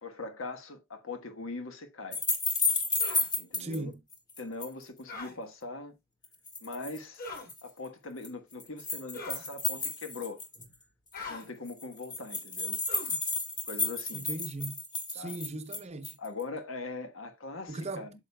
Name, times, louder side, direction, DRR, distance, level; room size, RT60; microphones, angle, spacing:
voice 1, 0.0-2.2 3.4-3.9 4.4-6.0 6.6-7.3 7.6-10.4 11.2-12.8 13.7-14.3 15.1-15.4 16.2-18.1, left 3 dB, 65° left, 1.3 m, -41 dB
sound 1, 2.1-3.8 4.1-4.8 6.2-7.0 7.4-7.6 8.2-10.7 11.1-11.2 11.4-11.5 11.7-16.3, left 3 dB, 20° left, 1.5 m, -32 dB
sound 2, 3.0-3.3 5.1-5.3 7.2-7.5 9.1-9.5 11.1-11.5 12.9-13.2, left 3 dB, 45° left, 4.0 m, -41 dB
voice 2, 3.6-4.0 14.1-14.8 15.1-16.2 17.7-18.1, right 2 dB, 30° right, 0.8 m, -38 dB
8.8 x 6.9 x 2.2 m
head